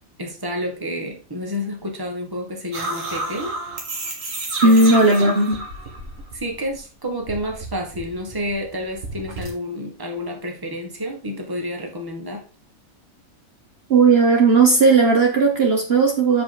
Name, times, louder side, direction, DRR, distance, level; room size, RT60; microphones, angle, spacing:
voice 1, 0.2-3.5 4.6-5.4 6.3-12.4, equal, 15° right, 2 dB, 1.4 m, -30 dB
sound 1, 2.7-6.8 7.1-9.5, right 2 dB, 70° right, 1.9 m, -31 dB
voice 2, 4.6-5.6 13.9-16.4, right 3 dB, 50° right, 1 dB, 1.3 m, -15 dB
7.5 x 5.1 x 3.9 m, 0.35 s
omnidirectional pair, 1.4 m